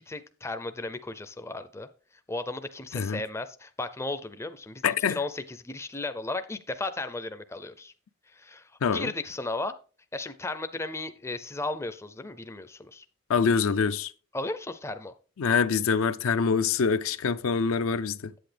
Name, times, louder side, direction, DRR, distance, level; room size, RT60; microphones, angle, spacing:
voice 1, 0.1-1.9 2.3-7.9 8.3-9.8 10.1-13.0 14.3-15.1, left 2 dB, 10° left, 0.4 m, -35 dB
voice 2, 4.8-5.2 8.8-9.1 13.3-14.1 15.4-18.3, left 5 dB, 70° left, 0.4 m, -25 dB
8.5 x 7.9 x 3.3 m
head